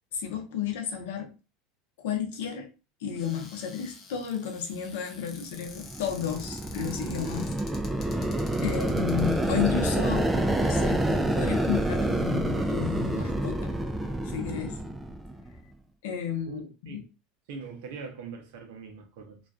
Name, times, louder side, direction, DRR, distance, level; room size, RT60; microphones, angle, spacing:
voice 1, 0.1-1.3 2.0-2.7 3.0-7.5 7.9-8.1 8.6-11.0 11.3-13.7 14.2-14.8 16.0-17.0, left 9 dB, 80° left, 0.6 m, -32 dB
Cupboard open or close, 3.1-13.5 14.2-14.3 14.5-14.9, left 4 dB, 40° left, 0.7 m, -50 dB
sound 1, 5.7-15.5, right 1 dB, 10° right, 0.3 m, -28 dB
voice 2, 16.5-17.1 17.5-19.4, right 5 dB, 70° right, 0.6 m, -42 dB
2.4 x 2.3 x 2.3 m
supercardioid pair, 105°, 0 cm